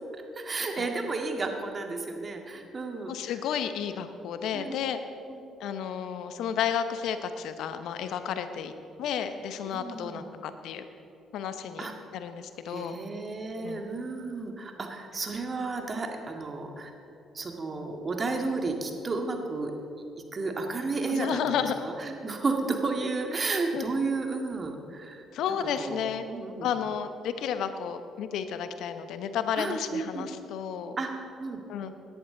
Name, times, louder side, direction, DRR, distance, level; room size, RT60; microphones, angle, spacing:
voice 1, 0.4-3.1 4.5-4.7 5.3-5.4 9.7-10.3 11.8-11.9 12.7-16.9 17.3-19.7 20.3-25.2 25.8-26.7 29.6-30.3 31.0-31.6, right 3 dB, 40° right, 3 dB, 1.9 m, -32 dB
voice 2, 3.1-5.0 5.6-8.7 9.0-10.8 11.3-11.9 12.1-13.0 13.6-13.9 21.1-21.7 23.7-23.8 25.3-26.3 26.6-31.0 31.7-32.1, left 8 dB, 70° left, 10 dB, 0.8 m, -32 dB
18.0 x 11.0 x 3.9 m, 2.7 s
hypercardioid pair, 50°, 0 cm